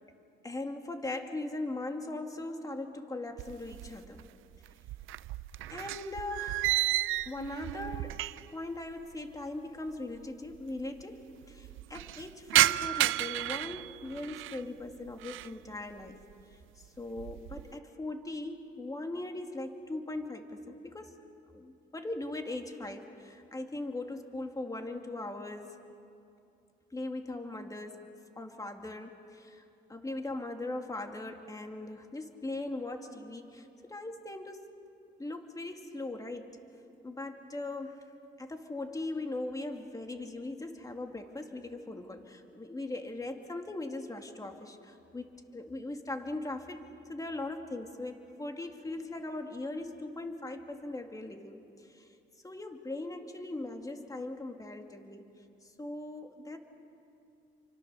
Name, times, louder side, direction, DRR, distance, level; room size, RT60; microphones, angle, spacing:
voice 1, 0.4-4.2 5.7-6.9 7.3-8.2 8.5-16.3 16.8-21.1 21.5-25.7 26.9-28.0 28.4-29.6 29.9-34.7 35.2-36.6 37.0-38.1 38.4-52.1 52.4-55.2 55.6-56.6, left 2 dB, 15° left, 4 dB, 2.3 m, -40 dB
sound 1, 3.4-4.3 4.5-8.6 8.9-9.0 9.9-10.0 10.2-10.3 10.5-11.0 11.4-14.6 15.1-15.6 16.0-16.4 16.8-17.7, right 15 dB, 85° right, 0.5 m, -32 dB
30.0 x 24.5 x 6.8 m, 2.6 s
cardioid pair, 90°, 20 cm